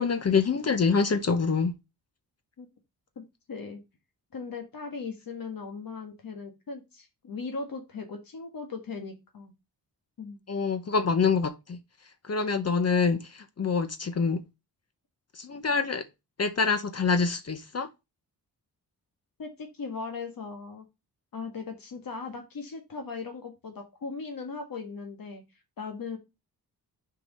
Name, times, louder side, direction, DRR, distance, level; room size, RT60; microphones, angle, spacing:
voice 1, 0.0-1.7 10.5-11.8 12.2-14.4 15.4-16.0 16.4-17.9, left 5 dB, 40° left, 0.8 m, -26 dB
voice 2, 3.5-3.8 4.3-9.5 10.2-10.4 19.4-20.8 21.3-25.4 25.8-26.2, left 4 dB, 65° left, 1.7 m, -38 dB
6.7 x 4.8 x 5.3 m
wide cardioid pair, 95°, 37 cm